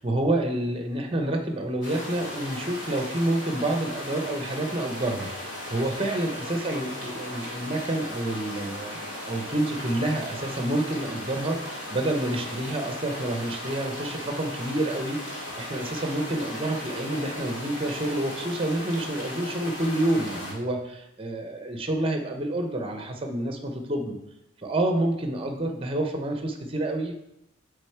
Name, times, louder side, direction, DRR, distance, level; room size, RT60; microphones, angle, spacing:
voice 1, 0.0-24.2 24.6-27.1, right 1 dB, 25° right, 4 dB, 0.7 m, -28 dB
sound 1, 1.8-20.5, left 1 dB, 60° left, 2.1 m, -37 dB
6.7 x 3.6 x 4.4 m, 0.87 s
head